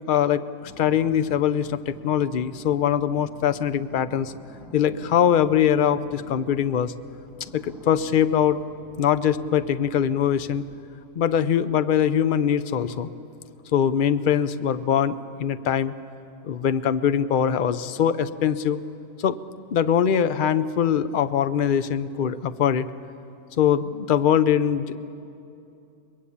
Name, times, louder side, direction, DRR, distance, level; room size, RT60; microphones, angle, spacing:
voice 1, 0.1-0.4 0.8-4.3 4.7-6.9 7.4-8.6 9.0-10.6 11.2-13.1 13.7-15.9 16.4-18.8 19.2-19.4 19.7-22.9 23.6-25.0, left 9 dB, 50° left, 12 dB, 0.7 m, -22 dB
sound 1, 0.6-10.8, right 1 dB, ahead, 1.9 m, -49 dB
23.0 x 21.5 x 8.6 m, 2.7 s
omnidirectional pair, 1.5 m